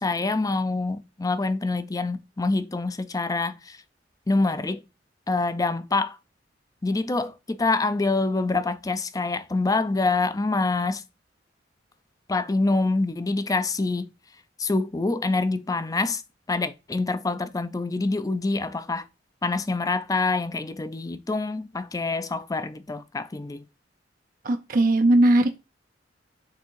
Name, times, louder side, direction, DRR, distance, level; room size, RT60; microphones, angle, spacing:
voice 1, 0.0-3.8 4.3-4.8 5.3-6.2 6.8-11.0 12.3-14.1 14.6-16.2 16.5-19.1 19.4-23.6, left 3 dB, 20° left, 0.4 m, -26 dB
voice 2, 24.4-25.6, right 1 dB, 50° right, 0.5 m, -19 dB
6.7 x 3.5 x 4.6 m
head